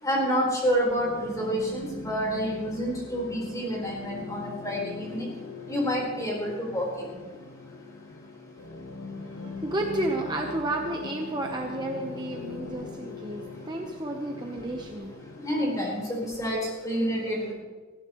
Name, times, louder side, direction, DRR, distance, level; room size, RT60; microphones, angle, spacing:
voice 1, 0.0-5.3 5.7-6.9 15.4-17.5, equal, 15° left, -3 dB, 4.5 m, -28 dB
sound 1, 1.0-16.2, left 4 dB, 90° left, 1.4 m, -41 dB
voice 2, 9.3-15.1, right 1 dB, 20° right, 1 dB, 1.0 m, -32 dB
19.0 x 15.5 x 3.2 m, 1.4 s
head